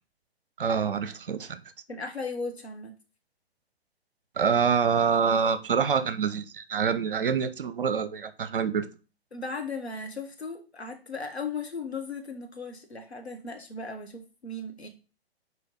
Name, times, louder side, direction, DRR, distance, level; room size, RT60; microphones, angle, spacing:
voice 1, 0.6-1.6 4.4-8.9, right 6 dB, 55° right, 0.8 m, -26 dB
voice 2, 1.9-2.9 9.3-14.9, left 3 dB, 80° left, 1.7 m, -36 dB
6.6 x 4.5 x 4.0 m
figure-of-eight pair, 120°, 32 cm